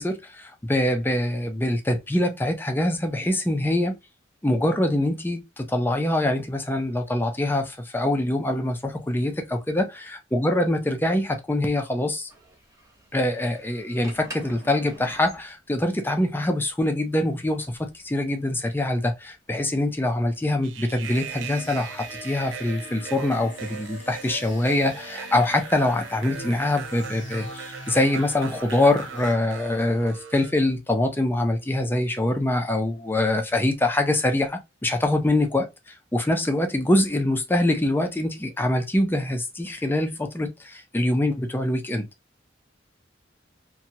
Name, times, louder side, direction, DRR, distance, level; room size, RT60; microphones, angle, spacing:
voice 1, 0.0-4.0 4.4-12.3 13.1-42.1, left 1 dB, 10° left, 0.5 m, -24 dB
sound 1, 12.3-21.3, right 1 dB, 15° right, 0.9 m, -47 dB
sound 2, 20.6-30.5, right 8 dB, 75° right, 0.3 m, -39 dB
sound 3, 21.0-29.3, left 2 dB, 80° left, 0.7 m, -42 dB
2.8 x 2.3 x 2.8 m
head